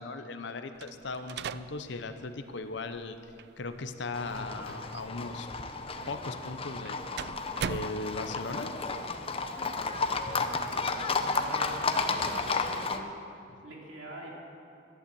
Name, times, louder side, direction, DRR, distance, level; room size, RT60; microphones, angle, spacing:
voice 1, 0.0-3.2 3.6-5.5 6.1-7.0 7.6-8.7, left 3 dB, 65° left, 8 dB, 0.7 m, -38 dB
sound 1, 0.8-8.6, right 7 dB, 60° right, 0.3 m, -43 dB
Livestock farm animals working animals, 4.1-13.0, left 4 dB, 30° left, 0.6 m, -32 dB
voice 2, 10.2-13.2 13.6-14.3, right 1 dB, 85° right, -2 dB, 2.7 m, -45 dB
11.5 x 11.0 x 7.0 m, 2.5 s
head